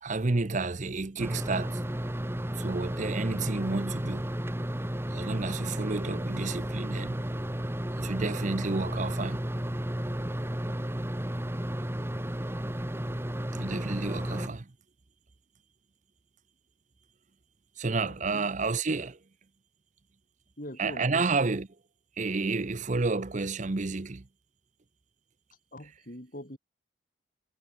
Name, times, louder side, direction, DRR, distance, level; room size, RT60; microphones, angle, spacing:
voice 1, 0.0-1.8 2.5-4.3 5.1-7.2 7.9-9.4 13.5-14.7 17.8-19.2 20.8-21.7 22.2-24.3, right 3 dB, 40° right, 0.7 m, -30 dB
sound 1, 1.2-14.5, equal, 10° right, 1.3 m, -33 dB
voice 2, 18.0-18.5 20.6-21.3 25.7-26.6, left 1 dB, 45° left, 5.7 m, -43 dB
head